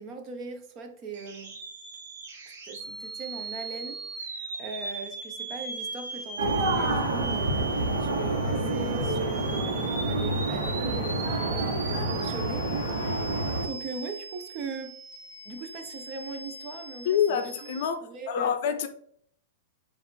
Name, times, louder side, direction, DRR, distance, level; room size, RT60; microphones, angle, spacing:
voice 1, 0.0-1.6 2.7-4.0 4.3-15.0 15.4-17.7 18.0-18.6, right 4 dB, 30° right, 0.6 m, -40 dB
sound 1, 1.1-17.9, right 3 dB, 55° right, 1.0 m, -39 dB
sound 2, 6.4-13.7, right 2 dB, 90° right, 1.0 m, -28 dB
voice 2, 17.1-18.9, left 8 dB, 55° left, 0.5 m, -27 dB
4.8 x 2.5 x 3.8 m
supercardioid pair, 160°, 0 cm